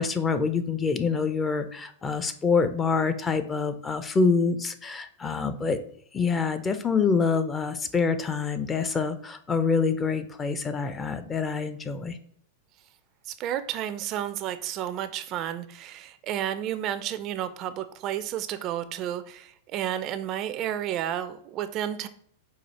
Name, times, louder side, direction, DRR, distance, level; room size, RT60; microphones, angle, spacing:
voice 1, 0.0-5.8 6.1-12.2, left 5 dB, 20° left, 10 dB, 0.5 m, -26 dB
voice 2, 13.3-22.1, right 11 dB, 40° right, 12 dB, 0.4 m, -31 dB
4.9 x 2.4 x 4.1 m, 0.63 s
hypercardioid pair, 105°, 0 cm